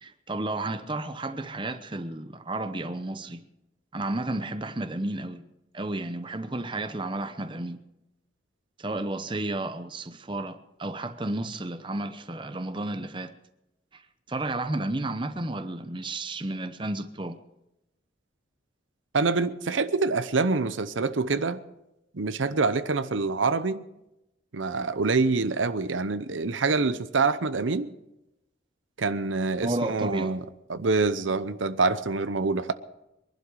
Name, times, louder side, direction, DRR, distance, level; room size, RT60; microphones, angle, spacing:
voice 1, 0.0-3.4 3.9-5.5 5.7-7.8 8.8-13.3 13.9-14.0 14.3-17.4 29.6-30.3, right 2 dB, 25° right, 0.8 m, -32 dB
voice 2, 19.1-21.6 22.1-23.8 24.5-27.9 29.0-30.4 30.7-32.7, right 4 dB, 85° right, 0.8 m, -26 dB
23.5 x 11.5 x 4.8 m
head